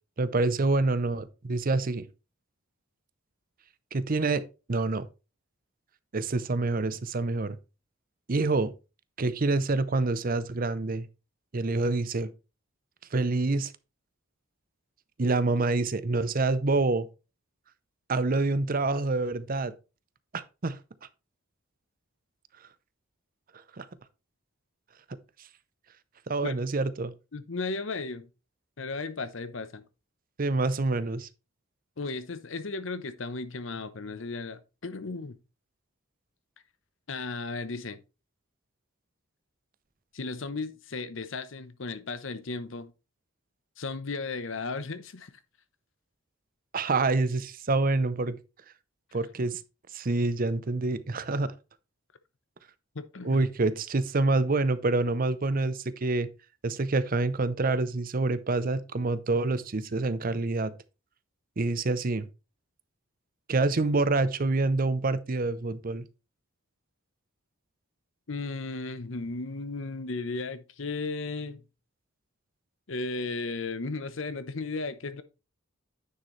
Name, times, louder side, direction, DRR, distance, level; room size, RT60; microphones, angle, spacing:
voice 1, 0.2-2.1 3.9-4.4 4.7-5.0 6.1-7.6 8.3-8.7 9.2-11.1 11.5-12.3 13.1-13.7 15.2-17.1 18.1-19.7 20.3-20.8 23.8-23.9 26.3-27.1 30.4-31.3 46.7-48.4 49.1-49.6 49.9-51.5 53.2-56.3 56.6-60.7 61.6-62.3 63.5-66.0, right 3 dB, 45° right, 0.6 m, -27 dB
voice 2, 27.3-28.3 28.8-29.8 32.0-35.4 37.1-38.0 40.1-42.9 43.8-45.3 52.9-53.5 68.3-71.6 72.9-75.2, left 3 dB, 65° left, 0.9 m, -35 dB
9.5 x 6.6 x 3.2 m
head